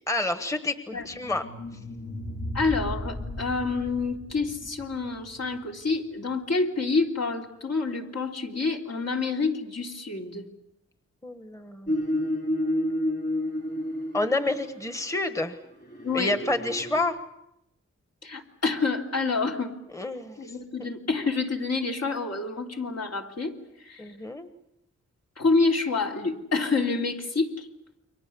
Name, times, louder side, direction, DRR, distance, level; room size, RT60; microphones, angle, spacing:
voice 1, 0.1-1.4 11.2-11.9 14.1-15.6 16.1-17.2 19.9-20.5 20.8-20.9 24.0-24.5, left 2 dB, 10° left, 9 dB, 1.3 m, -29 dB
sound 1, 1.0-6.1, left 1 dB, 75° left, 5.7 m, -37 dB
voice 2, 2.5-10.4 16.0-16.4 18.2-19.7 20.4-23.6 23.8-24.0 25.4-27.7, left 3 dB, 60° left, 1 dB, 3.3 m, -28 dB
sound 2, 11.9-14.8 15.8-17.0, left 1 dB, 35° left, 3.5 m, -29 dB
29.5 x 24.0 x 7.0 m, 0.86 s
wide cardioid pair, 115°, 29 cm